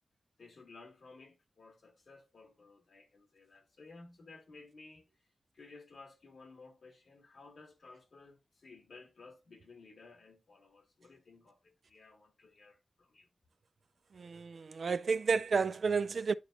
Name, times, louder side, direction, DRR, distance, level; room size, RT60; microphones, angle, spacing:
voice 1, 0.4-5.1 5.5-13.3, left 3 dB, 80° left, 1.9 m, -56 dB
voice 2, 14.1-16.3, right 5 dB, 75° right, 0.3 m, -31 dB
10.5 x 4.4 x 2.6 m
cardioid pair, 60°, 0 cm